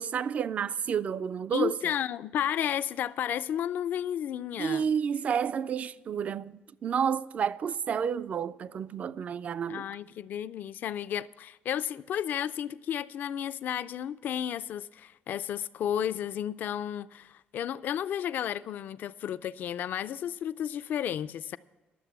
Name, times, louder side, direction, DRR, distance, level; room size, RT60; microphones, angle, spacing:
voice 1, 0.0-1.9 4.6-9.8, right 7 dB, 40° right, 0.3 m, -30 dB
voice 2, 1.5-4.9 9.7-21.6, left 10 dB, 55° left, 0.4 m, -32 dB
12.0 x 7.4 x 8.0 m
cardioid pair, 145°, 4 cm